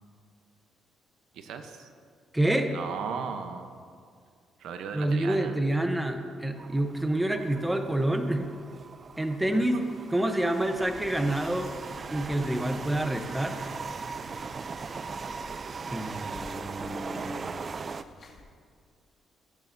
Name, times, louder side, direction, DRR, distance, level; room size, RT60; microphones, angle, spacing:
voice 1, 1.3-1.9 2.7-3.7 4.6-5.6 9.4-9.8, right 6 dB, 80° right, 7 dB, 0.8 m, -36 dB
voice 2, 2.3-2.7 4.9-8.5 9.2-9.8 10.1-11.7 12.1-13.6 15.9-17.6, right 1 dB, 10° right, 6 dB, 0.8 m, -28 dB
sound 1, 6.5-18.0, right 5 dB, 40° right, 0.4 m, -39 dB
sound 2, 10.5-18.4, left 2 dB, 45° left, 2.3 m, -53 dB
16.5 x 9.6 x 2.7 m, 2.1 s
cardioid pair, 90°, 0 cm